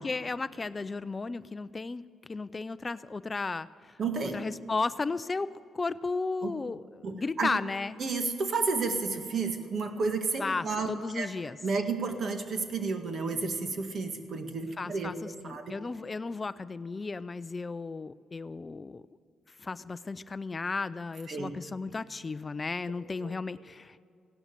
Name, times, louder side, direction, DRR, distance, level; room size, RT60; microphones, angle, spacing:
voice 1, 0.0-4.0 4.3-8.0 10.4-11.6 14.8-19.0 19.6-24.0, left 3 dB, 25° left, 15 dB, 0.4 m, -34 dB
voice 2, 4.0-4.4 6.4-6.5 7.0-7.5 8.0-10.9 11.1-11.3 11.6-15.1 15.4-15.7 21.3-21.5 23.2-23.3, right 4 dB, 50° right, 6 dB, 1.8 m, -31 dB
16.5 x 12.0 x 6.9 m, 2.4 s
cardioid pair, 90°, 0 cm